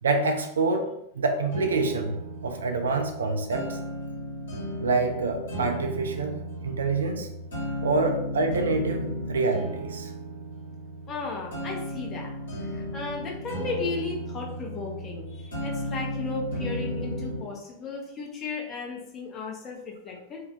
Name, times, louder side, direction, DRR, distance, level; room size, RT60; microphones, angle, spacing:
voice 1, 0.0-2.2 2.4-3.8 4.8-7.3 7.8-10.1, right 3 dB, 70° right, 4 dB, 0.3 m, -26 dB
sound 1, 1.5-17.5, equal, 70° left, 1.1 m, -35 dB
voice 2, 11.1-20.4, left 4 dB, 30° left, -1 dB, 0.6 m, -35 dB
2.4 x 2.0 x 2.7 m, 0.77 s
figure-of-eight pair, 90°, 0 cm